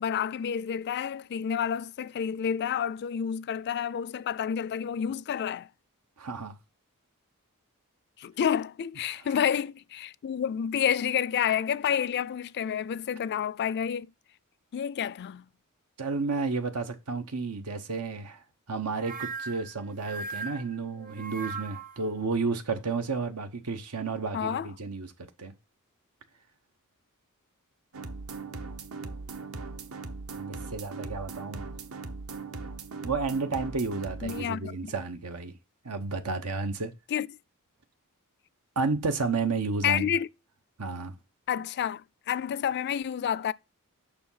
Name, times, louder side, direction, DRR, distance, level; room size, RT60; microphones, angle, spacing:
voice 1, 0.0-5.7 8.2-14.1 14.7-15.4 24.3-24.7 34.2-34.9 37.1-37.3 39.8-40.3 41.5-43.5, left 8 dB, 50° left, 0.3 m, -29 dB
voice 2, 6.2-6.6 9.1-9.2 16.0-25.1 25.4-25.5 30.3-31.7 33.0-35.5 35.8-36.9 38.8-40.1 40.8-41.1, right 4 dB, 90° right, 0.9 m, -32 dB
sound 1, 19.0-22.1, right 4 dB, 40° right, 0.8 m, -38 dB
sound 2, 27.9-34.4, right 3 dB, 70° right, 1.0 m, -39 dB
6.9 x 5.8 x 5.5 m
head